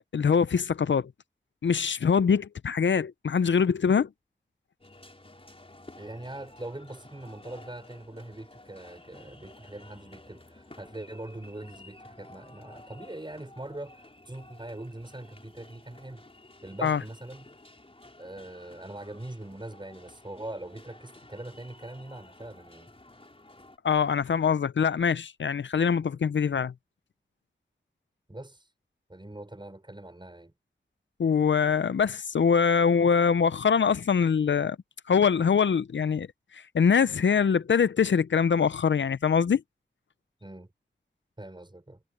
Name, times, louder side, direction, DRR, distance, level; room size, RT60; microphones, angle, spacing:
voice 1, 0.1-1.1 1.6-4.1 16.8-17.0 23.8-26.7 31.2-34.8 35.1-36.3 36.5-39.6, left 6 dB, 75° left, 0.5 m, -23 dB
sound 1, 4.8-23.8, left 2 dB, 30° left, 4.8 m, -52 dB
voice 2, 6.0-16.3 16.6-17.5 18.2-22.9 28.3-28.6 29.1-30.5 40.4-40.7 41.4-42.0, right 1 dB, 25° right, 6.2 m, -42 dB
wide cardioid pair, 75°, 19 cm